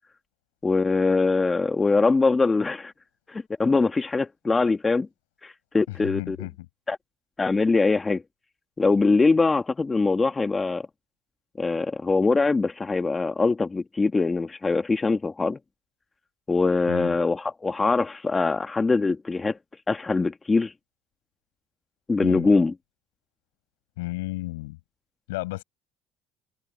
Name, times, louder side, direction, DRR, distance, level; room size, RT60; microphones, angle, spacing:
voice 1, 0.6-2.9 3.3-5.1 5.4-6.4 6.9-7.0 7.4-8.2 8.8-10.9 11.6-15.6 16.5-19.6 19.9-20.7 22.1-22.7, left 3 dB, 20° left, 1.5 m, -23 dB
voice 2, 5.9-6.5 16.9-17.2 22.2-22.5 24.0-24.8 25.3-25.6, left 20 dB, 85° left, 7.5 m, -32 dB
hypercardioid pair, 75°, 0 cm